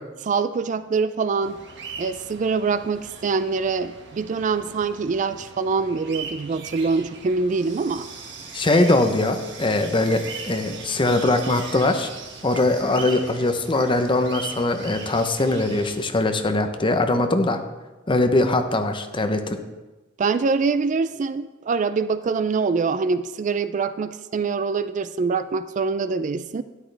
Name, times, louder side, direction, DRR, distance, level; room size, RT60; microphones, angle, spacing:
voice 1, 0.3-1.6 2.0-8.1 20.2-26.6, right 4 dB, 40° right, 13 dB, 0.3 m, -24 dB
sound 1, 1.4-16.0, right 5 dB, 65° right, 1.5 m, -39 dB
voice 2, 8.5-12.1 12.4-17.6 18.1-19.6, left 2 dB, 25° left, 7 dB, 0.8 m, -21 dB
12.5 x 10.5 x 3.4 m, 1.2 s
head